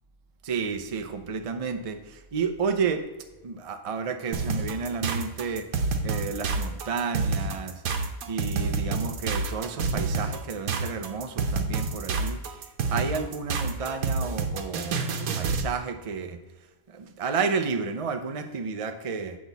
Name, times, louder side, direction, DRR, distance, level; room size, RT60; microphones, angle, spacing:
voice 1, 0.4-3.0 3.4-5.7 6.0-7.7 8.3-12.4 12.9-16.4 16.9-19.4, right 5 dB, 45° right, 6 dB, 0.4 m, -31 dB
sound 1, 4.3-15.7, right 4 dB, 85° right, 1.3 m, -28 dB
8.2 x 6.1 x 4.0 m, 1.1 s
omnidirectional pair, 1.5 m